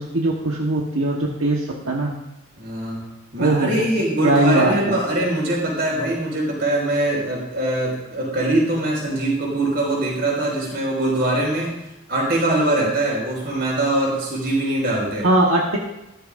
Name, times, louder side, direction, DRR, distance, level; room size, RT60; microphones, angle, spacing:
voice 1, 0.0-2.1 3.4-3.7 4.2-4.9 15.2-15.8, right 2 dB, 85° right, -1 dB, 1.3 m, -20 dB
voice 2, 2.6-3.0 3.3-11.7 12.1-15.3, right 1 dB, 50° right, -2 dB, 5.0 m, -22 dB
14.5 x 13.5 x 2.6 m, 0.94 s
head